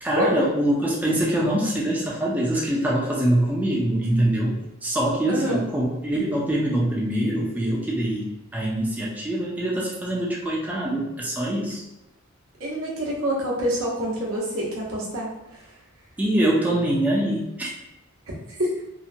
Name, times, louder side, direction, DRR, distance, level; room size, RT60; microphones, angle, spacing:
voice 1, 0.0-4.6 4.8-11.8 16.2-17.7, right 1 dB, 10° right, -4 dB, 0.4 m, -24 dB
voice 2, 5.3-5.7 12.6-15.7 18.3-18.8, equal, 70° right, -4 dB, 0.9 m, -27 dB
2.8 x 2.1 x 2.6 m, 0.96 s
head